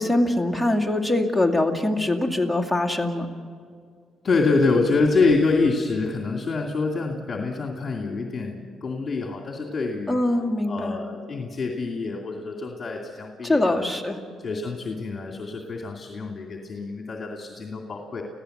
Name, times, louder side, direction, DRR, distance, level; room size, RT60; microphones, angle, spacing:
voice 1, 0.0-3.3 10.1-10.9 13.4-14.2, left 1 dB, ahead, 1 dB, 2.3 m, -23 dB
voice 2, 4.2-10.2 10.7-14.0 14.4-18.2, left 3 dB, 40° left, 1 dB, 2.5 m, -26 dB
30.0 x 16.0 x 8.0 m, 2.1 s
cardioid pair, 90°, 0 cm